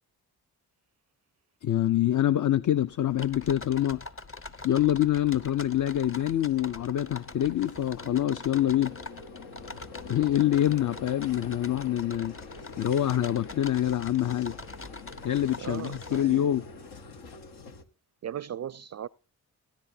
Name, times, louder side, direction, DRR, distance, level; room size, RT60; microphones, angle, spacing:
voice 1, 1.6-4.0 4.6-8.9 10.0-12.3 12.8-14.6 15.2-16.7, left 12 dB, 55° left, 0.6 m, -25 dB
Vehicle, 2.3-17.8, left 4 dB, 85° left, 1.2 m, -47 dB
sound 1, 3.1-16.2, left 3 dB, 35° left, 1.0 m, -44 dB
voice 2, 15.6-16.4 18.2-19.1, right 10 dB, 45° right, 0.4 m, -37 dB
16.0 x 10.5 x 2.7 m
cardioid pair, 50°, 38 cm